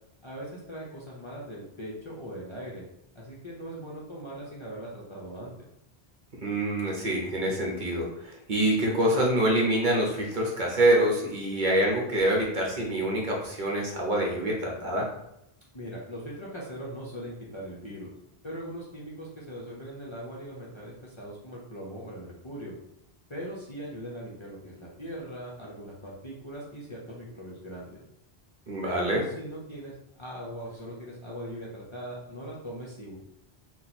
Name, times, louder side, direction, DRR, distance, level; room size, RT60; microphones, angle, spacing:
voice 1, 0.2-2.9 3.1-5.5 15.7-18.1 18.4-22.7 23.3-28.0 28.8-33.2, equal, 35° left, -6 dB, 0.6 m, -40 dB
voice 2, 6.4-15.1 28.7-29.2, right 1 dB, 55° right, -2 dB, 0.8 m, -26 dB
2.9 x 2.2 x 4.1 m, 0.81 s
omnidirectional pair, 1.0 m